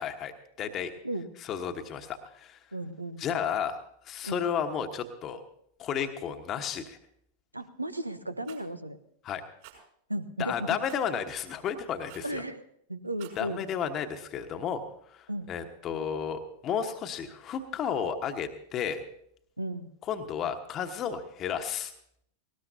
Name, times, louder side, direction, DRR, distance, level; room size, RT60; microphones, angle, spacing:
voice 1, 0.0-0.9 1.4-2.6 3.2-3.8 4.0-5.4 5.8-7.0 9.2-9.4 10.4-12.4 13.4-14.8 15.1-19.0 20.1-21.9, left 7 dB, 30° left, 7 dB, 1.2 m, -32 dB
voice 2, 2.7-3.2 4.2-4.4 7.5-9.0 10.1-10.8 12.2-13.6 15.3-15.5 19.6-19.9, right 1 dB, 85° right, 12 dB, 0.8 m, -35 dB
Rattle, 8.4-8.7 9.6-9.8 10.9-11.1 12.1-12.4 13.0-13.4, right 12 dB, 50° right, 6.0 m, -50 dB
19.5 x 18.5 x 2.7 m, 0.70 s
figure-of-eight pair, 90°, 0 cm